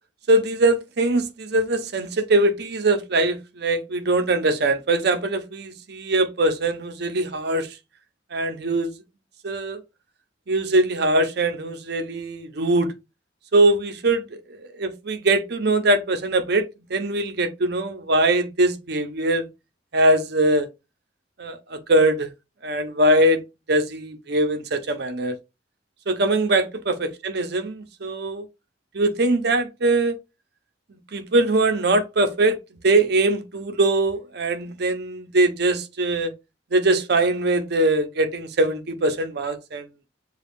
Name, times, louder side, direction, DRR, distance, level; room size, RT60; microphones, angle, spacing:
voice 1, 0.3-7.7 8.3-8.9 9.4-9.8 10.5-12.9 13.5-14.2 14.8-19.5 19.9-20.7 21.4-22.3 22.6-23.4 23.7-25.4 26.1-28.5 28.9-30.2 31.1-32.6 32.8-36.3 36.7-39.8, right 2 dB, 60° right, 0.7 m, -22 dB
6.9 x 2.3 x 2.6 m
head